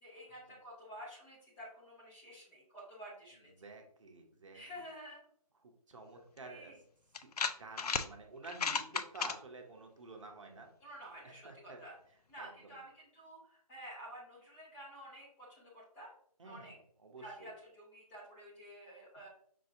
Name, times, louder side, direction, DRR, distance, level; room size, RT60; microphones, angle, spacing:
voice 1, 0.0-3.5 4.5-5.2 6.1-6.8 10.8-11.9 12.3-16.1 16.4-16.8 17.2-19.3, equal, 10° left, -6 dB, 0.7 m, -51 dB
voice 2, 3.6-4.9 5.6-6.7 7.2-7.3 7.6-10.7 11.2-11.8 12.4-12.8 16.4-17.5, right 3 dB, 50° right, 3 dB, 0.8 m, -51 dB
sound 1, 6.4-6.5 7.1-8.1 8.4-9.3, left 5 dB, 75° left, 0.4 m, -34 dB
5.4 x 2.7 x 2.6 m, 0.63 s
figure-of-eight pair, 160°, 20 cm